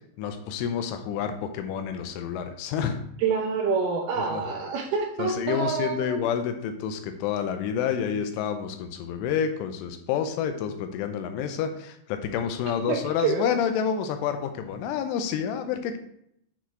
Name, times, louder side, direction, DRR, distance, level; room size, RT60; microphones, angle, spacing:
voice 1, 0.2-3.0 4.3-4.4 5.2-16.0, left 8 dB, 85° left, 7 dB, 3.2 m, -29 dB
voice 2, 3.2-6.2 12.9-13.5, right 5 dB, 85° right, 1 dB, 2.2 m, -27 dB
8.4 x 4.3 x 4.5 m, 0.71 s
omnidirectional pair, 5.6 m